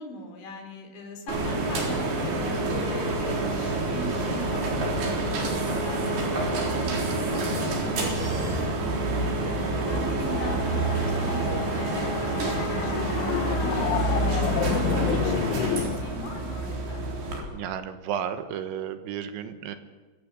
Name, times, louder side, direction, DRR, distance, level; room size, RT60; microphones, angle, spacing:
voice 1, 0.0-13.8 14.3-17.0, left 2 dB, 70° left, 3 dB, 5.7 m, -39 dB
sound 1, 1.3-17.4, right 2 dB, 55° right, 5.6 m, -27 dB
sound 2, 9.4-16.0, left 13 dB, 90° left, 3.3 m, -31 dB
voice 2, 17.5-19.8, right 9 dB, 75° right, 9 dB, 3.5 m, -33 dB
24.5 x 15.5 x 7.7 m, 1.4 s
omnidirectional pair, 5.5 m